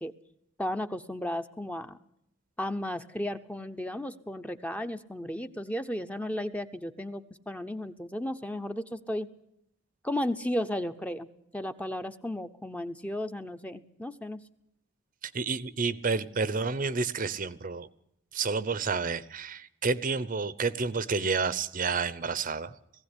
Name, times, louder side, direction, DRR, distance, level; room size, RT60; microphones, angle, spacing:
voice 1, 0.6-2.0 2.6-9.3 10.0-11.3 11.5-14.4, left 1 dB, 5° left, 8 dB, 0.7 m, -34 dB
voice 2, 15.3-17.9 18.3-22.7, right 4 dB, 40° right, 16 dB, 0.7 m, -30 dB
18.5 x 16.0 x 9.9 m, 0.76 s
head